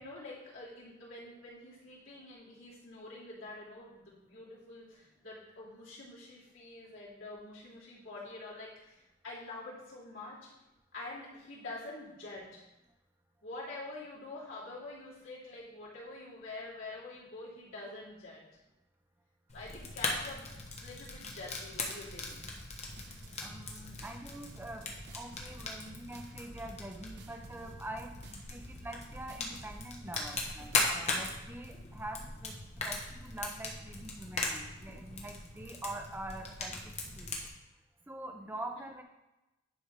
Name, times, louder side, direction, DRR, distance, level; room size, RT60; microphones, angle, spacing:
voice 1, 0.0-10.5 10.9-12.6 13.4-18.5 19.5-22.5, left 2 dB, 85° left, -7 dB, 2.7 m, -46 dB
Fire, 19.5-37.5, left 3 dB, 35° left, 1.1 m, -39 dB
sound 1, 22.1-31.2, right 2 dB, 60° right, 0.8 m, -54 dB
voice 2, 23.4-32.6 32.8-37.4 38.1-39.0, right 1 dB, 10° right, 3 dB, 0.6 m, -45 dB
10.0 x 3.5 x 4.8 m, 0.96 s
head